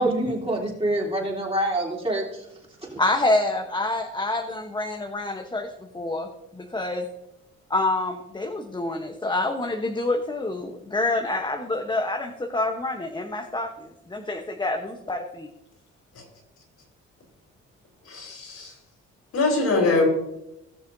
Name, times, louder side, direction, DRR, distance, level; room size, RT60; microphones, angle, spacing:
voice 1, 0.0-2.5 2.8-3.0, right 1 dB, 20° right, -3 dB, 3.4 m, -26 dB
voice 2, 3.0-7.0 7.7-15.5, left 2 dB, 15° left, 3 dB, 1.0 m, -27 dB
voice 3, 18.1-18.7 19.3-20.1, left 3 dB, 55° left, 1 dB, 3.9 m, -22 dB
18.5 x 6.7 x 2.7 m, 0.85 s
cardioid pair, 90°, 30 cm